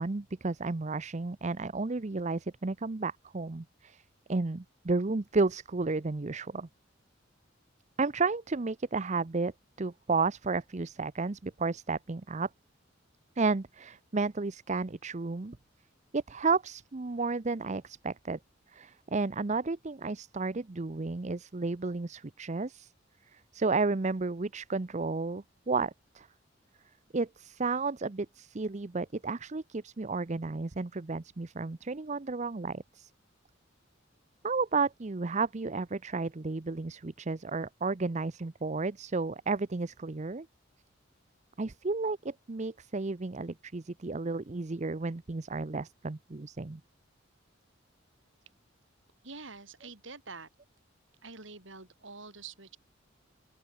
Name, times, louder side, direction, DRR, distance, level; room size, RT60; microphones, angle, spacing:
voice 1, 0.0-4.0 4.3-6.7 8.0-9.5 9.8-12.5 13.4-15.6 16.1-18.4 18.7-22.9 23.3-26.3 27.1-33.1 34.4-40.5 41.6-46.8, right 3 dB, 35° right, 0.7 m, -32 dB
voice 2, 49.2-50.5 51.2-52.8, right 4 dB, 70° right, 4.6 m, -46 dB
open air
head